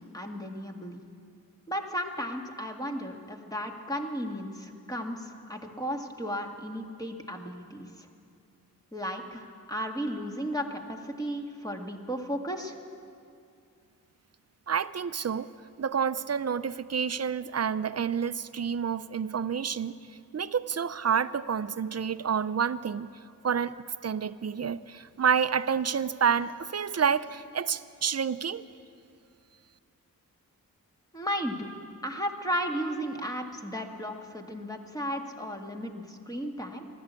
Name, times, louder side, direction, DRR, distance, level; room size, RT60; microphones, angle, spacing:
voice 1, 0.1-1.0 1.7-8.1 8.9-12.8 31.1-31.7 32.0-36.8, equal, 10° left, 2 dB, 2.0 m, -34 dB
voice 2, 14.7-15.5 15.8-19.9 20.3-23.1 23.4-23.7 24.0-28.7, right 7 dB, 45° right, 15 dB, 0.6 m, -29 dB
14.0 x 12.0 x 8.3 m, 2.4 s
cardioid pair, 40°, 36 cm